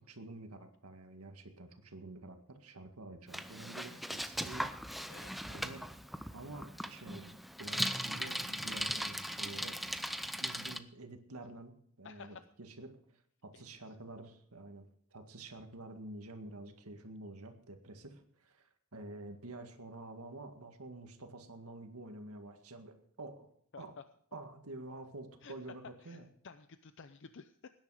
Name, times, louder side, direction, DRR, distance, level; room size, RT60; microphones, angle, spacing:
voice 1, 0.0-5.1 5.5-10.1 10.4-23.5 23.8-24.0 24.3-26.3, right 2 dB, 85° right, 5 dB, 1.9 m, -49 dB
Bicycle, 3.3-10.8, equal, ahead, 0.6 m, -39 dB
voice 2, 5.1-5.5 12.0-12.4 13.5-13.6 23.7-23.8 25.4-25.5 26.0-26.2 26.4-27.7, left 5 dB, 55° left, 10 dB, 0.6 m, -52 dB
18.5 x 10.5 x 4.9 m, 0.64 s
head